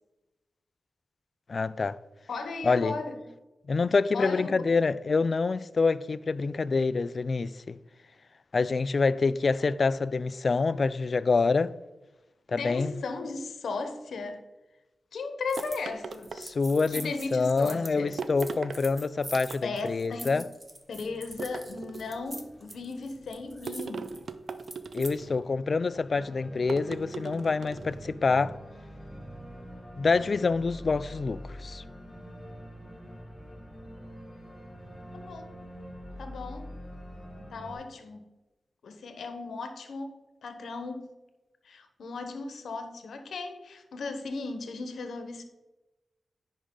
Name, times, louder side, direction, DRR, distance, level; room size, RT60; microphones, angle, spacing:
voice 1, 1.5-2.0 2.6-3.0 3.7-7.8 8.5-11.7 12.5-13.0 16.4-20.4 24.9-28.6 30.0-31.8, left 4 dB, 55° left, 0.3 m, -26 dB
voice 2, 2.3-3.3 4.1-4.8 12.5-14.4 15.1-16.3 16.9-18.1 19.6-20.4 20.9-24.1 35.1-35.5 36.2-36.7 37.5-38.3 38.8-41.1 41.6-45.4, left 3 dB, 80° left, 0.9 m, -36 dB
sound 1, 15.5-15.8 16.1-25.1, right 1 dB, 15° right, 1.1 m, -44 dB
sound 2, 15.6-17.0 18.2-18.8 19.3-20.0 21.4-22.3 23.7-25.4 26.7-28.0, right 5 dB, 75° right, 0.5 m, -39 dB
Organ, 20.9-37.7, equal, 10° left, 2.3 m, -46 dB
10.5 x 5.0 x 3.7 m
cardioid pair, 60°, 0 cm